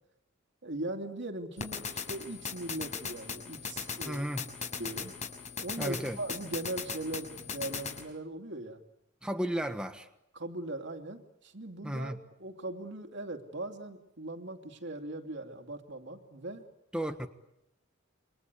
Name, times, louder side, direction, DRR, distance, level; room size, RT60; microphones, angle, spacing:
voice 1, 0.6-4.2 4.8-5.1 5.6-8.8 10.3-12.1 12.4-16.6, right 2 dB, 60° right, 4 dB, 2.8 m, -39 dB
sound 1, 1.6-8.0, left 5 dB, 35° left, 5.8 m, -39 dB
voice 2, 4.0-4.4 5.8-6.2 9.2-10.1 11.8-12.2 16.9-17.3, equal, 5° right, 5 dB, 1.4 m, -34 dB
28.0 x 25.0 x 8.4 m, 0.83 s
head